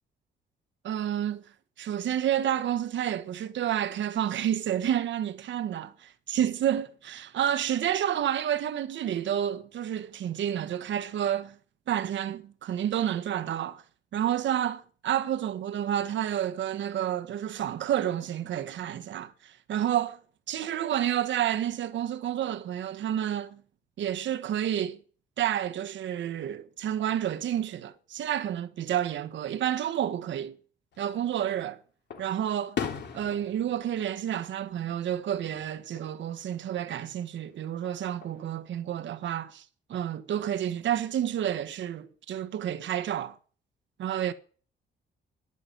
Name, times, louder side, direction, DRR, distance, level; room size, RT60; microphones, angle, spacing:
voice 1, 0.8-1.4 1.8-11.6 11.9-13.8 14.1-20.2 20.5-23.6 24.0-25.0 25.4-30.6 31.0-31.8 32.2-32.8 33.1-43.3 44.0-44.3, right 10 dB, 70° right, 1.3 m, -30 dB
Fireworks, 30.9-31.6 32.1-35.2 35.5-36.1 37.6-38.5, left 7 dB, 60° left, 3.1 m, -39 dB
11.0 x 9.5 x 8.6 m
cardioid pair, 90°, 20 cm